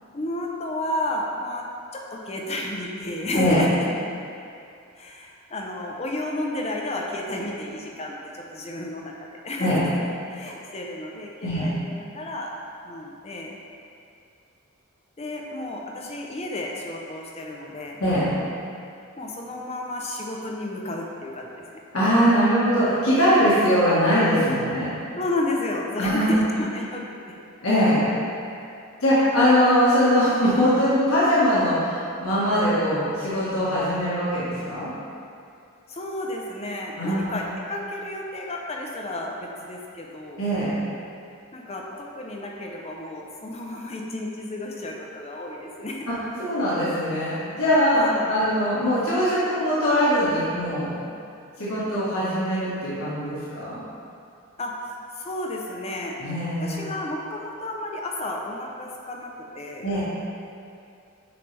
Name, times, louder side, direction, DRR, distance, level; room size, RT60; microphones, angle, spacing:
voice 1, 0.1-1.6 1.9-3.9 5.0-9.9 10.3-12.5 12.8-13.5 15.2-18.0 19.2-21.8 25.2-27.0 35.9-40.4 41.5-46.1 47.9-48.4 54.6-56.2 56.6-59.8, left 1 dB, 30° left, -1 dB, 0.7 m, -32 dB
voice 2, 21.9-24.9 26.0-26.4 27.6-28.1 29.0-34.9 37.0-37.4 40.4-40.8 46.4-50.9 51.6-53.8 56.2-56.9 59.8-60.0, equal, 80° left, -10 dB, 1.6 m, -21 dB
8.7 x 4.6 x 3.4 m, 2.5 s
head